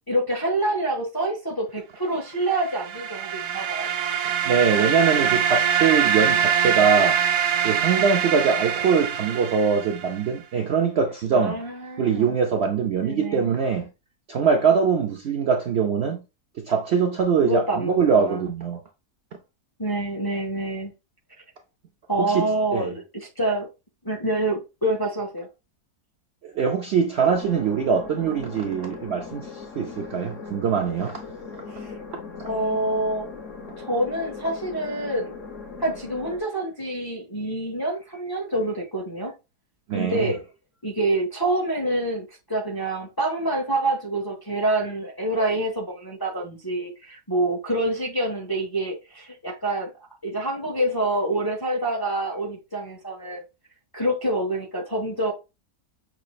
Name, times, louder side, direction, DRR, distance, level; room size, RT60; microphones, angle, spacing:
voice 1, 0.1-3.9 11.3-12.3 13.0-13.5 17.4-18.5 19.8-20.9 22.1-23.7 24.0-25.5 31.7-31.9 32.4-33.3 33.8-35.4 35.8-39.3 39.9-40.4 40.8-49.9 50.2-53.4 53.9-55.3, right 1 dB, 20° left, 0.6 m, -26 dB
sound 1, 2.5-10.2, right 8 dB, 85° right, 1.2 m, -24 dB
voice 2, 4.5-7.2 7.6-11.6 12.0-13.9 14.3-16.2 16.6-18.8 22.2-22.5 22.7-22.9 26.4-29.5 29.8-31.2 39.9-40.3, right 6 dB, 65° right, 0.6 m, -22 dB
sound 2, 27.2-36.4, left 4 dB, 55° left, 1.2 m, -39 dB
5.9 x 3.1 x 2.3 m
omnidirectional pair, 1.7 m